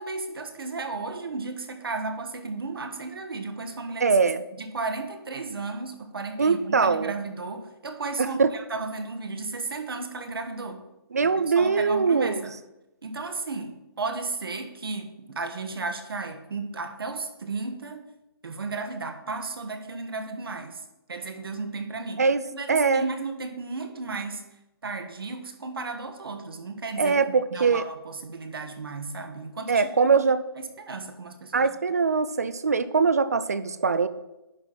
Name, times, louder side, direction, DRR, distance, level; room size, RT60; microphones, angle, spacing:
voice 1, 0.0-4.1 4.6-10.9 11.2-12.5 13.0-18.1 18.4-22.2 22.5-24.5 24.8-27.1 27.5-30.1 30.6-31.7, right 3 dB, 65° right, 6 dB, 1.3 m, -34 dB
voice 2, 4.0-4.4 6.4-7.1 8.2-8.5 11.1-12.4 22.2-22.4 22.7-23.1 27.0-27.8 29.7-30.4 31.5-34.1, right 5 dB, 40° right, 14 dB, 0.4 m, -22 dB
10.5 x 4.0 x 5.8 m, 0.94 s
hypercardioid pair, 180°, 13 cm